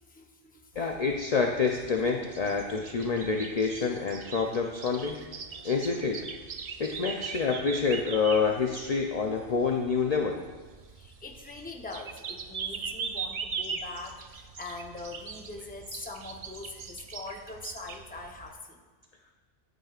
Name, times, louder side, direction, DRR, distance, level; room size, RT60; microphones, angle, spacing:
voice 1, 0.0-0.7 10.9-18.8, left 3 dB, 10° left, 1 dB, 0.7 m, -43 dB
sound 1, 0.7-18.5, right 5 dB, 50° right, 0.5 m, -41 dB
voice 2, 0.8-5.2 5.6-6.3 6.8-10.4, left 5 dB, 45° left, 1 dB, 0.6 m, -27 dB
11.5 x 9.2 x 2.4 m, 1.3 s
omnidirectional pair, 1.1 m